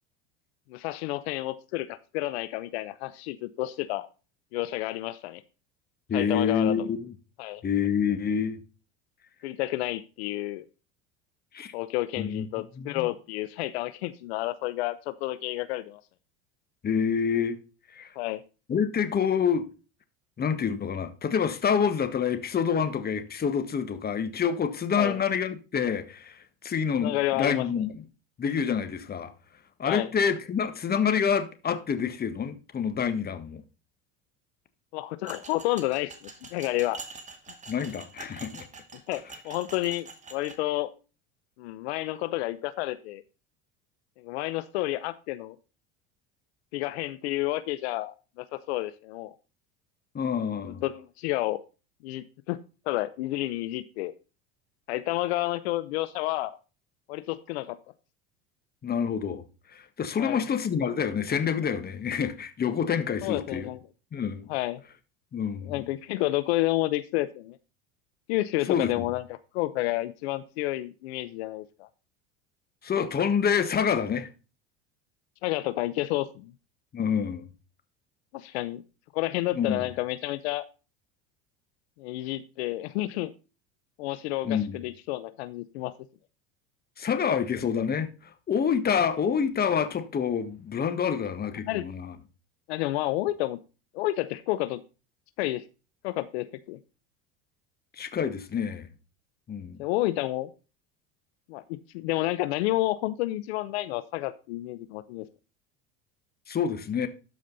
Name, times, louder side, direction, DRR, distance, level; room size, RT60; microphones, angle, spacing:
voice 1, 0.7-4.1 4.5-5.4 6.1-6.7 7.4-7.6 9.4-10.6 11.7-16.0 18.2-18.4 25.0-25.2 27.0-27.8 29.8-30.1 34.9-37.0 39.1-40.9 41.6-43.2 44.2-45.6 46.7-49.3 50.7-51.6 52.0-52.6 52.9-54.1 54.9-56.6 57.1-57.8 60.2-60.4 63.2-63.8 64.5-64.8 65.7-67.6 68.3-71.9 75.4-76.5 78.3-78.8 79.1-80.6 82.0-83.3 84.0-85.9 91.1-91.2 91.6-91.8 92.7-93.6 93.9-94.8 95.4-95.6 96.0-96.8 99.8-100.5 101.5-105.3, left 17 dB, 80° left, 0.8 m, -30 dB
voice 2, 6.1-7.1 7.6-8.6 11.5-11.7 12.2-12.5 12.8-13.1 16.8-17.6 17.9-18.1 18.7-19.7 20.4-27.9 28.4-29.3 29.8-33.6 37.7-38.7 50.1-50.8 58.8-59.4 59.7-63.7 64.1-64.5 65.3-65.7 68.7-69.0 72.8-74.3 76.9-77.5 79.5-79.9 84.4-84.8 87.0-92.1 98.0-98.9 99.5-99.8 106.5-107.1, left 7 dB, 30° left, 1.5 m, -27 dB
sound 1, 35.2-40.6, right 4 dB, 20° right, 2.2 m, -45 dB
13.0 x 5.2 x 4.0 m
supercardioid pair, 95°, 32 cm